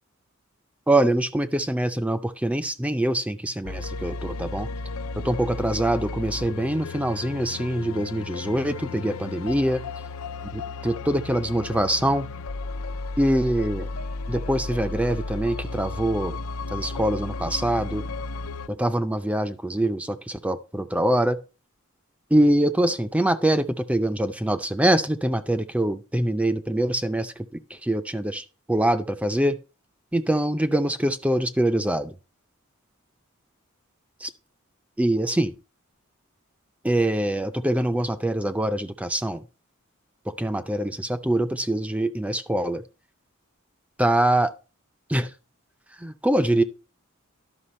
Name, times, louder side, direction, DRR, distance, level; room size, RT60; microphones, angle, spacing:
voice 1, 0.9-4.7 5.2-9.8 10.5-12.3 13.2-13.9 14.3-16.4 16.7-18.0 18.7-21.4 22.3-27.5 27.7-29.6 30.1-32.1 34.2-34.3 35.0-35.5 36.8-39.4 40.3-42.8 44.0-44.5 45.1-45.3 46.0-46.6, right 1 dB, 5° right, 9 dB, 0.4 m, -24 dB
sound 1, 3.6-18.7, left 3 dB, 90° left, 0.6 m, -34 dB
11.5 x 5.8 x 4.3 m, 0.31 s
head